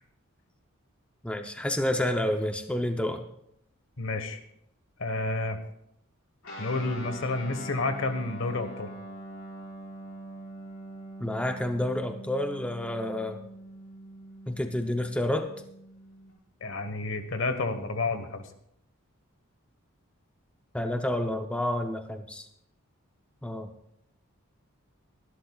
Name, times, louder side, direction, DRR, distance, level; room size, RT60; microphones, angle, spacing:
voice 1, 1.2-3.3 11.2-13.4 14.5-15.5 20.7-22.5 23.4-23.7, left 1 dB, 5° left, 5 dB, 0.6 m, -29 dB
voice 2, 4.0-4.4 5.0-5.6 6.6-8.9 16.6-18.5, left 3 dB, 65° left, 8 dB, 1.3 m, -30 dB
Guitar, 6.4-16.3, right 1 dB, 90° left, 4.8 m, -43 dB
22.5 x 11.5 x 2.3 m, 0.74 s
head